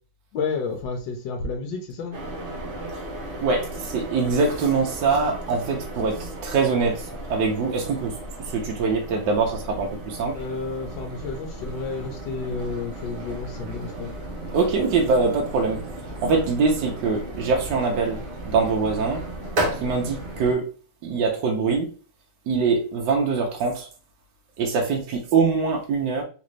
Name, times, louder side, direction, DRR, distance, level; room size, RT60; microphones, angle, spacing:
voice 1, 0.3-2.2 10.3-14.1, left 4 dB, 85° left, 1.4 m, -31 dB
sound 1, 2.1-20.6, right 1 dB, 50° right, 0.6 m, -35 dB
voice 2, 3.4-8.1 8.5-10.3 14.5-15.9 16.2-18.2 18.4-19.2 19.8-20.7 21.0-21.9 22.5-23.9 24.6-26.2, right 4 dB, 80° right, 1.4 m, -23 dB
3.8 x 2.5 x 3.1 m
omnidirectional pair, 1.9 m